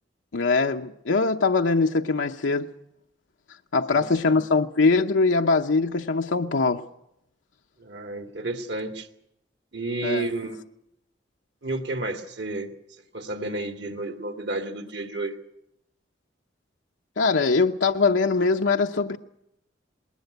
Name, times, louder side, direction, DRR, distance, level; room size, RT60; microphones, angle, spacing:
voice 1, 0.3-2.7 3.7-6.9 10.0-10.3 17.2-19.2, left 4 dB, 90° left, 4 dB, 0.7 m, -22 dB
voice 2, 3.9-4.4 7.8-9.1 9.7-10.6 11.6-12.7 13.1-15.4, right 2 dB, 65° right, 7 dB, 2.1 m, -31 dB
20.5 x 18.5 x 7.9 m, 0.81 s
head